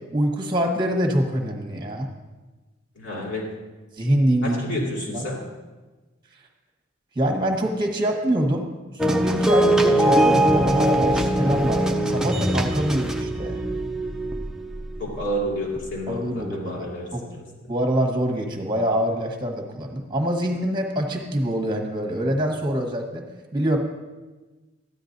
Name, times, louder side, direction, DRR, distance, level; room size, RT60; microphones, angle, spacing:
voice 1, 0.1-2.1 4.0-4.6 5.1-5.3 7.1-8.7 9.0-13.6 16.1-16.9 17.1-17.2 17.7-23.2 23.5-23.8, equal, 25° right, 3 dB, 1.2 m, -25 dB
voice 2, 3.0-3.5 4.4-5.4 15.0-17.1 17.3-17.4, equal, 65° left, -4 dB, 2.8 m, -30 dB
sound 1, 9.0-15.2 15.8-15.9, right 1 dB, 5° right, 0.5 m, -21 dB
13.5 x 10.0 x 2.6 m, 1.2 s
head